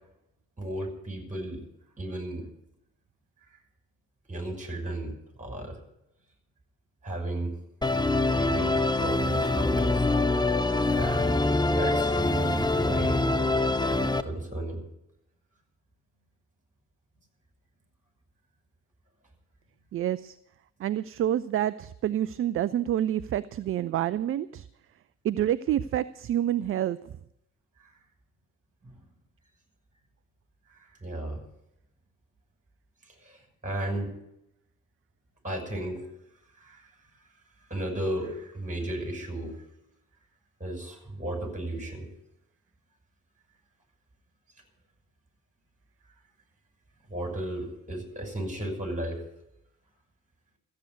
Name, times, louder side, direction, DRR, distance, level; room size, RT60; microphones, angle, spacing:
voice 1, 0.6-1.7 2.0-2.5 4.3-5.8 7.0-7.6 8.2-10.2 10.9-11.4 11.7-13.4 13.8-14.8 28.8-28.9 30.7-31.4 33.2-34.1 35.4-36.1 36.6-36.9 37.7-39.6 40.6-42.1 47.1-49.2, right 1 dB, 20° right, 2 dB, 6.1 m, -34 dB
Musical instrument, 7.8-14.2, left 2 dB, 10° left, 0.9 m, -25 dB
voice 2, 19.9-20.4 20.8-24.7 25.2-27.0, right 11 dB, 35° right, 18 dB, 0.5 m, -28 dB
14.0 x 8.7 x 9.5 m, 0.82 s
figure-of-eight pair, 45°, 39 cm